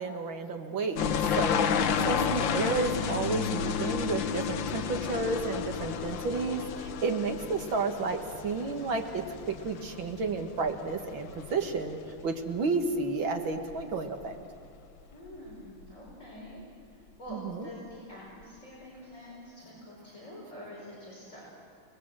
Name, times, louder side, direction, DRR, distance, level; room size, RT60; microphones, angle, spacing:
voice 1, 0.0-1.7 2.0-12.0 12.2-14.4 17.3-17.7, right 4 dB, 65° right, 5 dB, 2.3 m, -31 dB
sound 1, 1.0-12.3 12.6-13.1 13.5-14.3 14.6-14.7 15.5-15.6 15.8-15.9, left 7 dB, 65° left, 1.5 m, -32 dB
voice 2, 15.1-16.6 16.9-21.4, left 1 dB, 35° left, -6 dB, 5.6 m, -46 dB
29.5 x 20.0 x 7.6 m, 2.5 s
omnidirectional pair, 2.4 m